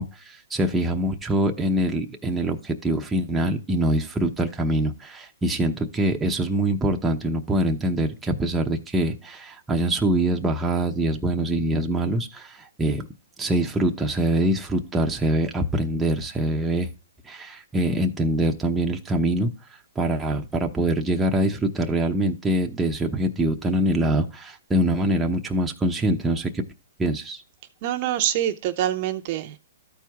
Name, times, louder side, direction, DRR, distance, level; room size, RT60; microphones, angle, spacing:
voice 1, 0.0-13.1 13.4-16.9 17.2-19.5 20.0-26.6 27.0-27.4, right 1 dB, 10° right, 0.8 m, -24 dB
voice 2, 27.8-29.6, right 12 dB, 40° right, 0.8 m, -25 dB
13.5 x 4.6 x 3.5 m
hypercardioid pair, 145°, 0 cm